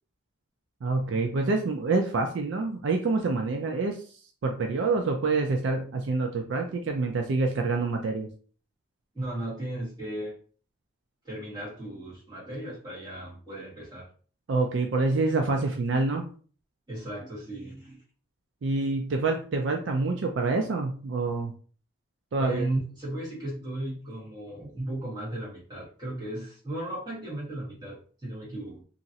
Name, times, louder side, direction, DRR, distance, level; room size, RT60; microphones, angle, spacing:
voice 1, 0.8-4.0 4.4-8.3 14.5-16.3 18.6-21.5 22.3-22.7, right 3 dB, 70° right, 3 dB, 0.4 m, -27 dB
voice 2, 9.1-10.4 11.2-14.1 16.9-18.0 22.4-28.8, right 1 dB, 20° right, -7 dB, 1.5 m, -35 dB
2.9 x 2.5 x 2.7 m, 0.42 s
head